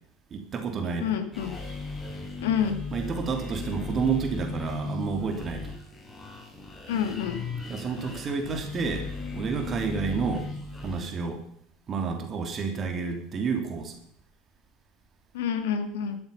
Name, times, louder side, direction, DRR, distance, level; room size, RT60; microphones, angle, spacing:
voice 1, 0.3-1.2 2.9-5.7 7.7-9.1 9.3-10.5 10.8-11.4 11.9-14.0, right 5 dB, 35° right, 4 dB, 3.2 m, -30 dB
voice 2, 1.0-1.6 2.4-2.8 6.9-7.4 15.3-16.2, left 8 dB, 70° left, 8 dB, 2.2 m, -28 dB
sound 1, 1.3-11.1, left 3 dB, 15° left, 7.9 m, -37 dB
13.5 x 12.5 x 5.7 m, 0.66 s
figure-of-eight pair, 75°, 0 cm